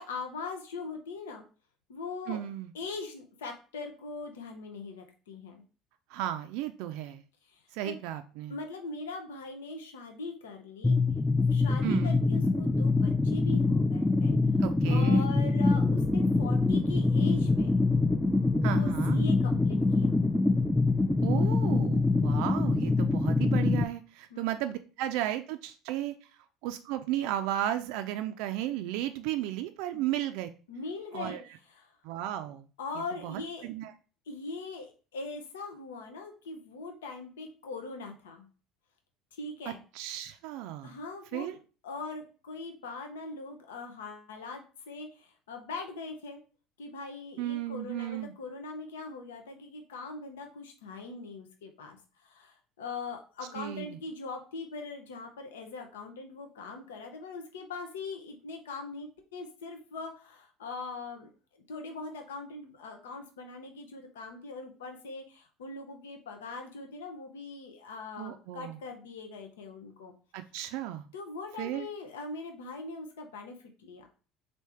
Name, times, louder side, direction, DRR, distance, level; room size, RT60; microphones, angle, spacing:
voice 1, 0.0-1.4 1.9-2.4 2.7-5.6 7.4-8.0 8.5-11.0 11.5-14.4 14.9-17.7 18.7-20.2 24.3-24.5 29.9-30.0 30.7-31.4 31.7-32.0 32.8-33.7 34.3-38.5 39.3-39.8 40.8-41.6 41.8-46.4 46.8-70.1 71.1-74.1, left 3 dB, 90° left, 4 dB, 0.7 m, -41 dB
voice 2, 2.3-2.7 6.1-7.2 7.7-8.5 11.8-12.2 14.6-15.2 18.6-19.2 21.2-26.3 26.6-30.5 31.1-31.4 32.0-32.6 33.2-33.9 39.9-41.0 41.3-41.6 47.4-48.3 53.5-54.0 68.2-68.8 70.3-71.1 71.6-71.9, right 12 dB, 75° right, 8 dB, 0.3 m, -34 dB
sound 1, 10.8-23.8, left 3 dB, 10° left, 0.3 m, -25 dB
sound 2, 15.7-21.7, right 3 dB, 25° right, 0.6 m, -44 dB
3.4 x 2.7 x 4.3 m, 0.36 s
hypercardioid pair, 75°, 0 cm